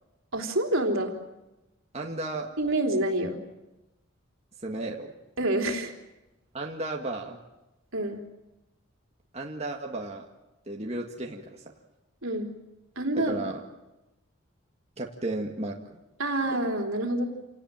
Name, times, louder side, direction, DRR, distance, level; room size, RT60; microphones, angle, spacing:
voice 1, 0.3-1.2 2.6-3.4 5.4-5.9 7.9-8.2 12.2-12.5 12.9-13.4 16.2-17.2, right 1 dB, 75° right, 2 dB, 3.5 m, -27 dB
voice 2, 1.9-2.5 4.6-5.1 6.5-7.4 9.3-10.3 10.7-11.7 13.2-13.6 15.0-16.0, right 2 dB, 30° right, 0 dB, 1.8 m, -34 dB
28.0 x 18.5 x 8.9 m, 1.0 s
head